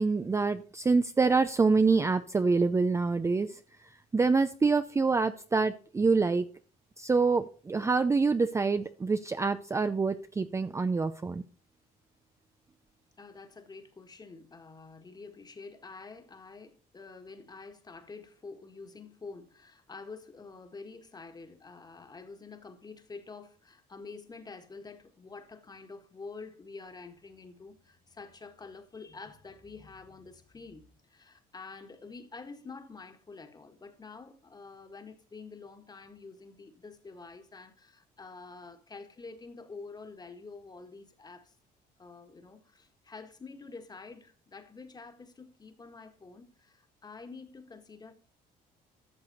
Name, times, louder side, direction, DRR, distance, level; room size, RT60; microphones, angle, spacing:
voice 1, 0.0-6.5 7.0-11.4, right 4 dB, 15° right, 0.5 m, -26 dB
voice 2, 13.2-41.5 42.0-48.1, left 4 dB, 25° left, 1.6 m, -48 dB
13.0 x 6.7 x 4.1 m
cardioid pair, 110°, 17 cm